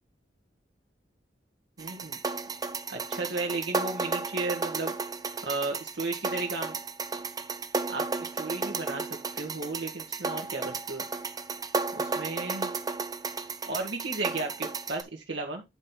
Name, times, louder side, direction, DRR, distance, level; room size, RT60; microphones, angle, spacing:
sound 1, 1.8-15.0, right 4 dB, 20° right, 0.7 m, -33 dB
voice 1, 1.8-2.2 2.9-4.9 5.4-6.8 7.9-11.0 11.9-12.7 13.7-15.6, right 3 dB, 90° right, 0 dB, 1.9 m, -34 dB
10.5 x 4.5 x 3.8 m, 0.22 s
head